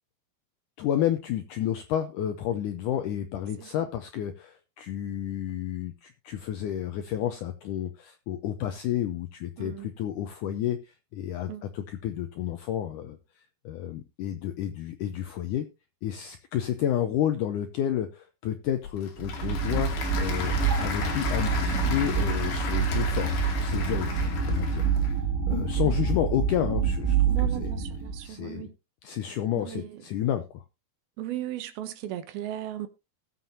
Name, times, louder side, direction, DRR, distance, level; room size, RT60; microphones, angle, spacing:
voice 1, 0.8-15.7 16.0-20.5 20.8-25.2 25.5-27.7 28.2-28.7 29.0-30.6, left 11 dB, 90° left, 1.8 m, -31 dB
voice 2, 9.6-9.9 11.5-11.6 25.8-26.0 27.3-28.7 29.6-30.0 31.2-32.9, right 13 dB, 75° right, 2.8 m, -36 dB
Applause / Crowd, 18.7-25.1, left 5 dB, 70° left, 4.2 m, -36 dB
sound 1, 19.2-28.3, right 5 dB, 35° right, 4.4 m, -27 dB
19.0 x 7.6 x 2.7 m
omnidirectional pair, 4.5 m